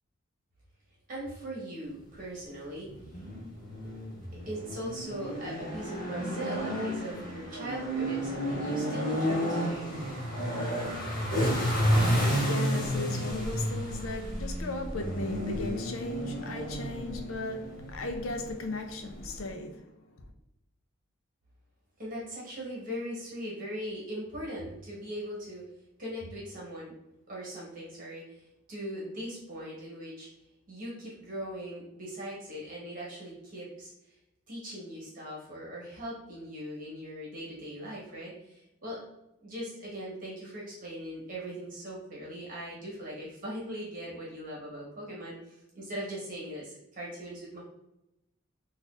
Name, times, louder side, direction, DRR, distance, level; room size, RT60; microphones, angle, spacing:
voice 1, 1.1-3.2 4.1-10.1 22.0-25.6 26.0-26.9 27.3-30.3 30.7-34.2 34.5-39.0 39.4-47.6, equal, 40° right, 1.1 m, -40 dB
sound 1, 2.9-19.5, equal, 45° left, 1.2 m, -31 dB
voice 2, 12.0-20.2, left 2 dB, 65° left, 0.5 m, -37 dB
4.1 x 2.5 x 2.4 m
head